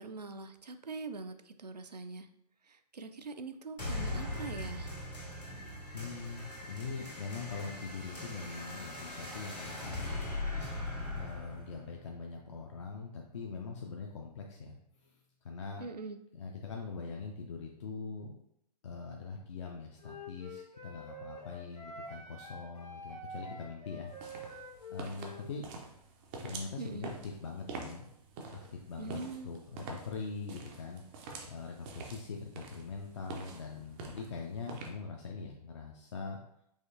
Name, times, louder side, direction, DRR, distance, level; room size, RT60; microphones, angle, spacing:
voice 1, 0.0-2.3 2.6-4.9 15.8-16.2 26.8-27.1 29.0-29.5, right 4 dB, 80° right, 8 dB, 0.4 m, -43 dB
sound 1, 3.8-12.8, left 2 dB, 90° left, 1.6 m, -40 dB
voice 2, 5.9-10.3 11.2-15.9 16.3-18.3 18.8-24.6 24.9-25.7 26.4-28.1 28.5-36.4, left 4 dB, 45° left, 1 dB, 0.5 m, -43 dB
Wind instrument woodwind instrument, 20.0-25.5, equal, 75° left, 1.4 m, -47 dB
sound 2, 24.1-34.9, right 4 dB, 15° right, 0.4 m, -47 dB
4.9 x 3.1 x 2.7 m, 0.74 s
figure-of-eight pair, 120°, 21 cm